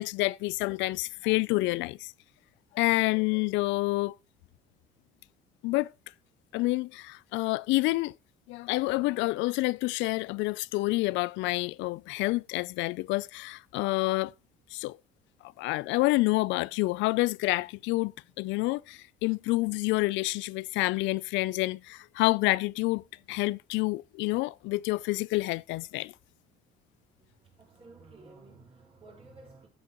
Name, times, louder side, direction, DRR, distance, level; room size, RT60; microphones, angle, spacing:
voice 1, 0.0-2.1 2.7-4.1 5.6-5.9 6.5-8.1 8.5-14.3 14.7-15.0 15.6-26.1, left 21 dB, 80° left, 0.4 m, -28 dB
voice 2, 27.2-29.7, right 3 dB, 30° right, 4.7 m, -53 dB
13.0 x 8.2 x 3.0 m
cardioid pair, 155°, 19 cm